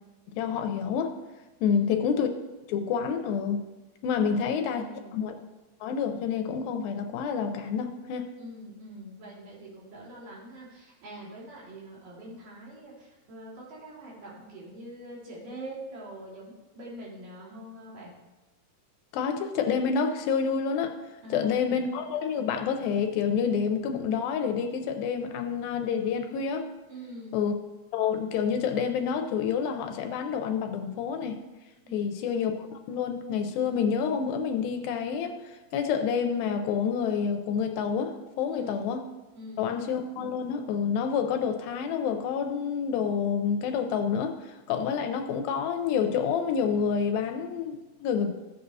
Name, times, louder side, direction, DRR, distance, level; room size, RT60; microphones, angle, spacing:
voice 1, 0.4-1.1 1.6-2.3 2.7-3.6 4.0-4.8 5.1-5.4 5.8-8.3 19.1-20.9 21.3-26.7 27.3-27.5 27.9-31.4 31.9-39.1 39.6-48.3, left 6 dB, 85° left, 7 dB, 2.3 m, -28 dB
voice 2, 1.6-2.1 4.2-4.4 4.7-5.2 8.4-18.1 21.2-21.8 26.9-27.5 31.9-32.3 38.5-39.0 39.3-39.8, right 1 dB, 65° right, -5 dB, 3.6 m, -44 dB
14.5 x 7.9 x 2.7 m, 1.1 s
omnidirectional pair, 4.3 m